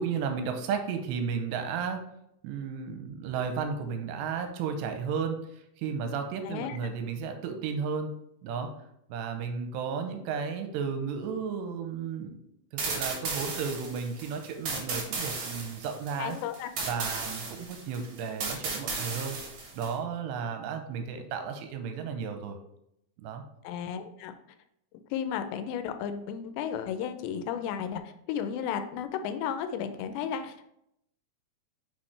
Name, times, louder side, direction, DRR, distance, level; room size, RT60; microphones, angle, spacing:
voice 1, 0.0-2.1 2.4-8.1 8.4-8.7 9.1-12.3 12.7-16.4 16.9-19.4 19.7-22.6 23.2-23.4, right 6 dB, 90° right, 6 dB, 2.8 m, -33 dB
voice 2, 6.5-6.8 16.2-16.9 23.6-24.4 25.1-28.0 28.3-30.7, left 8 dB, 85° left, 9 dB, 2.8 m, -33 dB
sound 1, 12.8-19.9, right 4 dB, 60° right, 2.1 m, -35 dB
6.4 x 5.8 x 3.2 m, 0.77 s
omnidirectional pair, 5.0 m